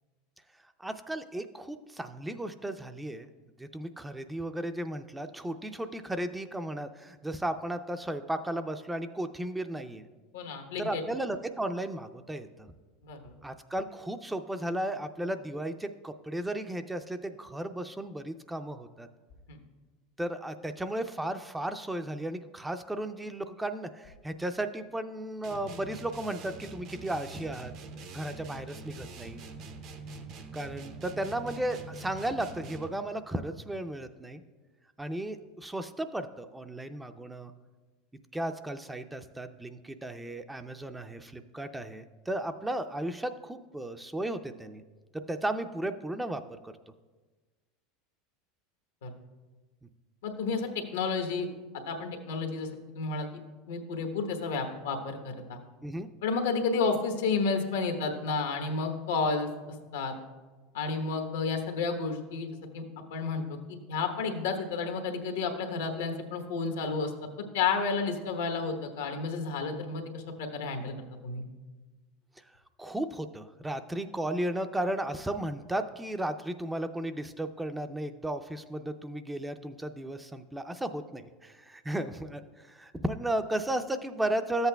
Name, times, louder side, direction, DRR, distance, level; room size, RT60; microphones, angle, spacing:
voice 1, 0.8-3.3 3.6-10.1 10.8-12.7 13.4-19.1 20.2-27.7 28.1-29.4 30.5-34.4 35.0-37.5 38.3-44.8 45.1-46.7 55.8-56.1 72.8-84.7, right 1 dB, 10° right, 8 dB, 0.4 m, -35 dB
voice 2, 10.3-11.0 13.0-13.3 19.5-19.6 49.0-49.1 50.2-51.5 51.9-52.7 52.9-53.3 53.7-55.6 56.2-59.5 59.9-60.1 60.7-62.8 63.1-67.1 67.5-70.9 71.2-71.4, left 4 dB, 85° left, 5 dB, 1.0 m, -31 dB
sound 1, 25.4-33.1, right 3 dB, 55° right, 0.7 m, -44 dB
13.0 x 8.0 x 2.3 m, 1.3 s
hypercardioid pair, 100°, 0 cm